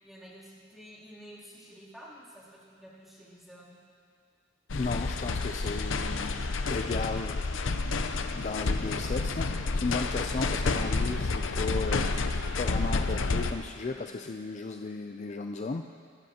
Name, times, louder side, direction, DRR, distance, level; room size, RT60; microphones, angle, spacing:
voice 1, 0.0-3.8 13.8-14.2, equal, ahead, -8 dB, 2.9 m, -50 dB
sound 1, 4.7-13.5, left 3 dB, 80° left, 0.7 m, -30 dB
voice 2, 4.7-7.9 8.3-12.2 12.6-15.8, left 3 dB, 35° left, 5 dB, 0.4 m, -35 dB
21.5 x 13.0 x 2.9 m, 2.2 s
head